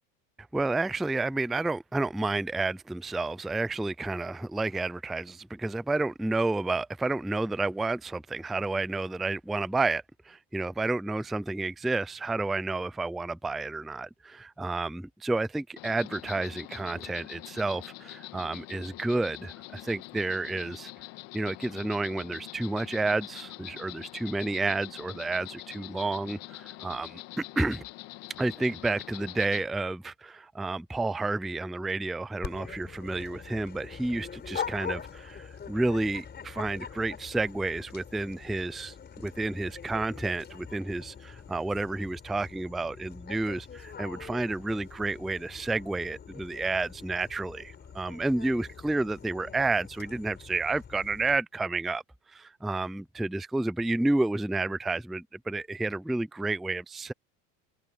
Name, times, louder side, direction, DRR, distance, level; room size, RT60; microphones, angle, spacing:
voice 1, 0.5-20.9 21.3-27.8 28.4-52.0 52.3-57.1, right 2 dB, ahead, 0.3 m, -30 dB
Insect, 15.8-29.6, left 19 dB, 65° left, 1.9 m, -44 dB
Dog, 32.4-51.4, left 7 dB, 30° left, 4.7 m, -43 dB
supercardioid pair, 115°, 36 cm